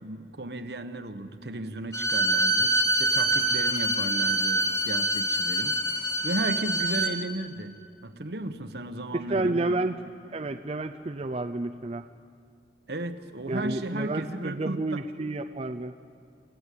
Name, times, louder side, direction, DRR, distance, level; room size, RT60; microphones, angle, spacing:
voice 1, 0.0-5.8 6.2-7.8 8.0-9.7 12.9-15.0, right 1 dB, 65° right, 9 dB, 1.2 m, -34 dB
Bowed string instrument, 1.9-7.1, right 1 dB, 20° left, 1.4 m, -25 dB
voice 2, 9.1-10.0 10.3-12.1 13.5-15.9, right 2 dB, 35° right, 5 dB, 0.5 m, -30 dB
29.0 x 15.0 x 8.5 m, 2.3 s
head